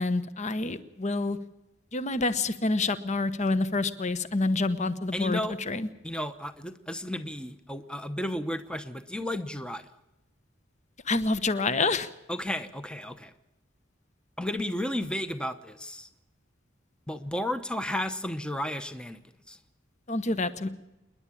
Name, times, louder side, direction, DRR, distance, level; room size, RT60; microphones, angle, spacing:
voice 1, 0.0-1.4 1.9-5.4 5.7-5.9 11.0-12.1 20.1-20.7, left 3 dB, 40° left, 13 dB, 1.1 m, -27 dB
voice 2, 5.1-5.6 6.0-9.8 12.3-13.3 14.4-16.1 17.1-19.2 19.5-19.6, left 1 dB, 5° left, 9 dB, 0.9 m, -33 dB
28.0 x 11.0 x 8.5 m, 0.95 s
head